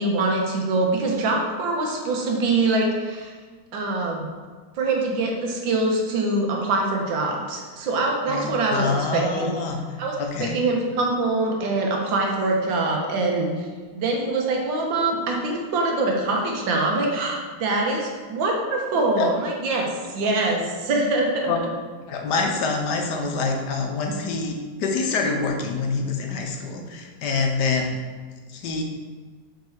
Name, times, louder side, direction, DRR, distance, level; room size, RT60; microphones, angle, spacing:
voice 1, 0.0-3.3 3.7-4.3 4.8-8.9 9.1-9.5 10.0-10.1 10.4-13.7 13.9-21.5, right 2 dB, 80° right, 0 dB, 1.8 m, -24 dB
voice 2, 8.3-10.5 18.9-19.3 21.5-21.6 22.1-28.0 28.5-28.8, left 4 dB, 70° left, 3 dB, 1.3 m, -26 dB
5.4 x 4.8 x 4.6 m, 1.5 s
omnidirectional pair, 2.0 m